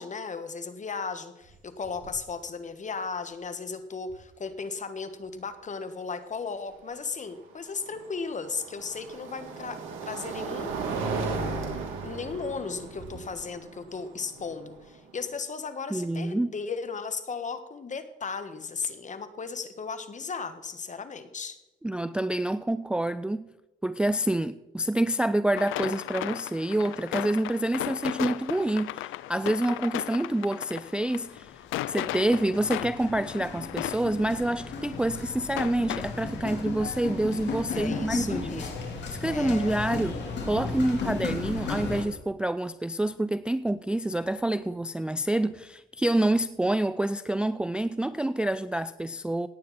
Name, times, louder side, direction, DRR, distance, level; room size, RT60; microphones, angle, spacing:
voice 1, 0.0-10.9 12.0-21.6 37.7-38.7 39.2-39.8, left 5 dB, 40° left, 1.5 m, -36 dB
sound 1, 1.4-1.5 1.8-2.3 4.1-4.2 7.2-15.3, right 4 dB, 85° right, 3.2 m, -36 dB
voice 2, 15.9-16.5 21.8-23.5 23.8-31.5 31.9-38.6 39.2-49.5, right 1 dB, 5° right, 0.3 m, -27 dB
sound 2, 25.6-40.0, left 15 dB, 90° left, 0.5 m, -37 dB
sound 3, 31.0-31.3 31.5-42.0, left 4 dB, 65° left, 3.7 m, -35 dB
17.5 x 9.2 x 4.2 m
cardioid pair, 90°, 20 cm